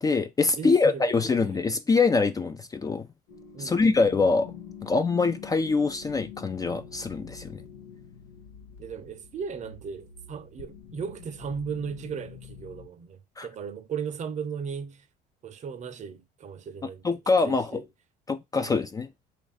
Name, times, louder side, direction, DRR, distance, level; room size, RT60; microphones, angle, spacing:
voice 1, 0.0-3.1 3.6-4.5 4.8-7.6 13.4-13.5 17.0-17.8 18.3-19.1, left 4 dB, 20° left, 0.3 m, -24 dB
voice 2, 0.6-1.7 3.5-4.0 8.8-15.1 15.4-17.1 17.4-17.9 18.6-18.8, right 6 dB, 40° right, 0.6 m, -37 dB
sound 1, 3.3-12.9, left 7 dB, 85° left, 0.8 m, -46 dB
3.2 x 2.5 x 3.9 m
supercardioid pair, 95°, 18 cm